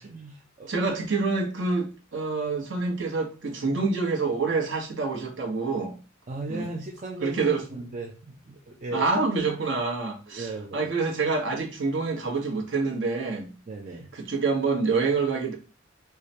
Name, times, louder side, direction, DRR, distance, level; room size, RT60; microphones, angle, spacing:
voice 1, 0.0-0.8 6.3-9.1 10.3-10.9 13.7-14.1, right 2 dB, 35° right, 0 dB, 0.4 m, -37 dB
voice 2, 0.7-5.9 6.5-6.6 7.2-7.6 8.9-13.5 14.1-15.6, right 4 dB, 60° right, 0 dB, 1.0 m, -27 dB
4.7 x 2.1 x 2.7 m, 0.33 s
head